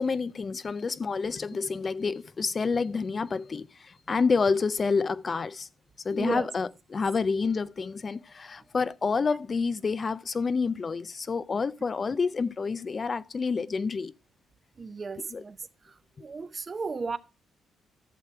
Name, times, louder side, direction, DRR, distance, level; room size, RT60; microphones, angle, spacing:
voice 1, 0.0-5.7 6.0-14.1 15.3-15.4, left 4 dB, 35° left, 0.4 m, -28 dB
voice 2, 6.1-6.5 14.8-15.6 16.2-17.2, right 4 dB, 35° right, 0.7 m, -34 dB
12.5 x 6.6 x 4.5 m
cardioid pair, 90°, 0 cm